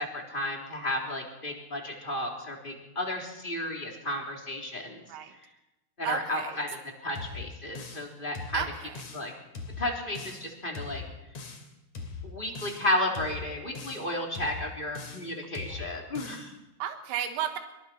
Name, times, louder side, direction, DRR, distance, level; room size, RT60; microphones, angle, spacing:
voice 1, 0.0-5.0 5.4-5.5 6.0-8.6 9.1-9.3 9.8-11.0 12.2-16.5, left 1 dB, 15° left, 0 dB, 3.3 m, -33 dB
voice 2, 6.0-6.6 8.5-9.0 15.7-15.8 16.8-17.6, right 10 dB, 80° right, 5 dB, 3.4 m, -33 dB
sound 1, 7.2-8.1 8.4-9.3 9.6-10.5 10.8-11.7 12.0-12.9 13.2-14.1 14.4-15.3 15.6-16.5, left 4 dB, 45° left, 3.7 m, -41 dB
25.0 x 24.0 x 4.5 m, 0.93 s
omnidirectional pair, 4.6 m